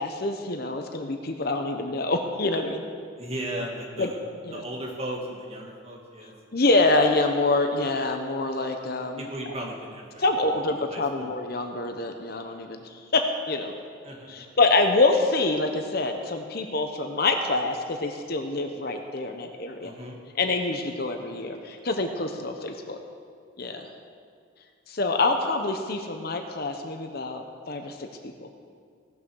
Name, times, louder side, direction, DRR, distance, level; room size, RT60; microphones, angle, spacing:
voice 1, 0.0-2.8 4.0-4.1 4.4-4.6 6.5-9.3 10.2-13.7 14.3-19.9 20.4-23.0 23.6-23.9 24.9-28.5, left 2 dB, 50° left, 5 dB, 0.9 m, -26 dB
voice 2, 3.2-4.2 4.5-6.3 9.2-10.2 10.9-11.3 14.0-14.6 19.8-20.2, right 1 dB, 30° right, -2 dB, 2.2 m, -36 dB
17.5 x 6.9 x 6.3 m, 2.1 s
head